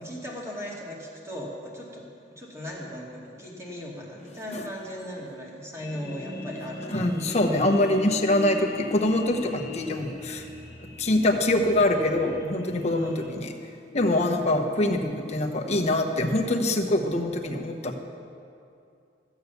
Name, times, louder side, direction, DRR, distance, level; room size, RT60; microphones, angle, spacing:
voice 1, 0.0-7.0 13.0-13.3 14.1-14.4, equal, 15° right, -4 dB, 2.5 m, -38 dB
sound 1, 5.8-13.3, left 2 dB, 20° left, 1.3 m, -40 dB
voice 2, 6.9-10.5 11.0-13.5 13.9-18.0, left 1 dB, 40° left, 3 dB, 1.1 m, -24 dB
14.0 x 8.2 x 7.0 m, 2.6 s
head